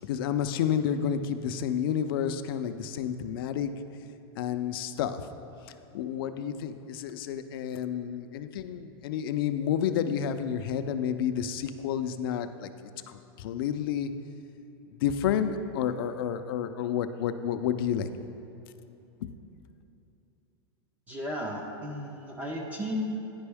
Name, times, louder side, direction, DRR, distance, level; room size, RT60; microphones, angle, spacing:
voice 1, 0.0-3.7 4.4-5.2 5.9-12.7 13.1-14.1 15.0-18.1 19.2-19.3, left 8 dB, 60° left, 9 dB, 0.4 m, -30 dB
voice 2, 21.1-23.0, right 1 dB, 10° right, 0 dB, 0.4 m, -35 dB
9.6 x 5.3 x 3.4 m, 3.0 s
supercardioid pair, 165°, 13 cm